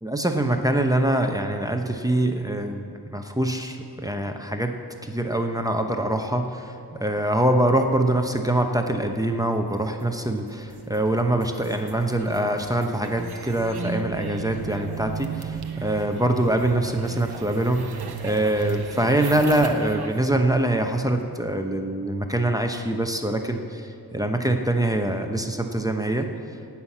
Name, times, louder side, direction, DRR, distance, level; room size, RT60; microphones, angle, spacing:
voice 1, 0.0-4.8 5.0-26.3, right 1 dB, 10° right, 4 dB, 0.8 m, -24 dB
sound 1, 10.3-20.2, right 6 dB, 80° right, 0.9 m, -35 dB
17.5 x 5.9 x 7.2 m, 2.5 s
wide cardioid pair, 85°, 38 cm